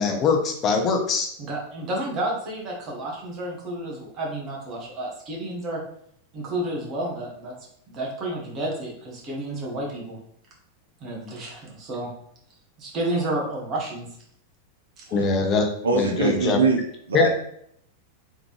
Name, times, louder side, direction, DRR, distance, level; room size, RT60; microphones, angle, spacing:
voice 1, 0.0-1.3 15.1-16.6 17.1-17.3, left 4 dB, 30° left, 3 dB, 0.6 m, -22 dB
voice 2, 1.4-5.8 6.3-7.5 7.9-10.2 11.0-12.1 12.8-14.1 15.0-15.1, right 1 dB, 35° right, -2 dB, 1.4 m, -31 dB
voice 3, 15.8-17.3, right 4 dB, 70° right, 2 dB, 0.5 m, -23 dB
3.6 x 3.5 x 3.1 m, 0.68 s
figure-of-eight pair, 90°, 0 cm